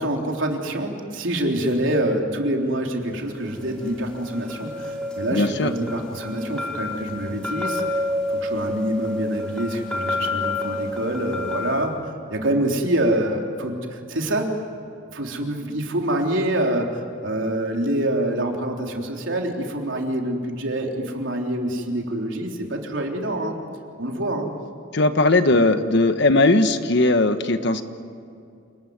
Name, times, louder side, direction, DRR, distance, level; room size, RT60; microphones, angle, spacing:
voice 1, 0.0-7.8 8.3-11.9 12.3-14.5 15.1-23.6 24.0-24.5, right 1 dB, 70° right, 1 dB, 3.6 m, -26 dB
sound 1, 3.5-11.8, left 2 dB, 5° left, 4.8 m, -29 dB
voice 2, 5.3-5.7 24.9-27.8, left 2 dB, 60° left, 9 dB, 1.3 m, -18 dB
28.5 x 20.0 x 9.6 m, 2.5 s
head